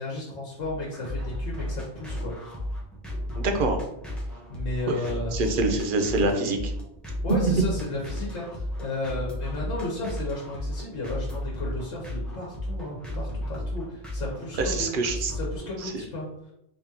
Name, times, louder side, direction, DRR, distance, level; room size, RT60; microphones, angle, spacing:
voice 1, 0.0-2.5 4.5-5.5 7.2-14.9 15.1-16.5, left 2 dB, 80° left, -3 dB, 1.3 m, -34 dB
sound 1, 0.6-15.9, left 1 dB, ahead, 0.8 m, -34 dB
voice 2, 3.4-3.8 4.9-5.0 5.3-6.7 14.6-15.3 15.8-15.9, right 2 dB, 60° right, 5 dB, 0.6 m, -25 dB
3.6 x 3.5 x 2.8 m, 0.81 s
omnidirectional pair, 1.3 m